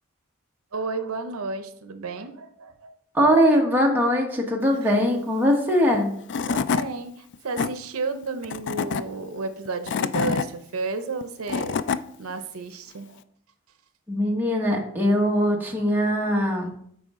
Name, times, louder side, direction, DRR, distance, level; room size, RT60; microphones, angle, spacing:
voice 1, 0.7-3.0 4.6-4.9 6.5-11.9 12.2-13.2, right 3 dB, 80° right, 9 dB, 0.7 m, -32 dB
voice 2, 3.1-6.1 14.1-16.7, equal, 10° right, -1 dB, 1.2 m, -21 dB
Tools / Wood, 5.9-6.0 6.3-6.9 7.3-7.7 8.4-9.0 9.6-10.5 11.2-12.0, left 6 dB, 55° left, 0.3 m, -26 dB
8.4 x 5.1 x 3.6 m, 0.68 s
head